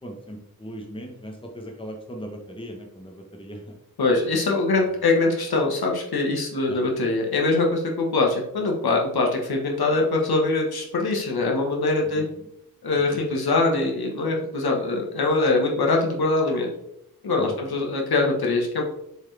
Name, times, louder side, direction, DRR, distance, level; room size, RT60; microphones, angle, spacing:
voice 1, 0.0-3.7 6.7-6.8 12.1-12.2 13.1-13.2 17.4-17.5, equal, 15° left, 1 dB, 1.1 m, -38 dB
voice 2, 4.0-12.2 12.8-16.7 17.2-18.8, left 3 dB, 85° left, 0 dB, 1.5 m, -23 dB
6.9 x 4.4 x 3.4 m, 0.79 s
wide cardioid pair, 150°, 37 cm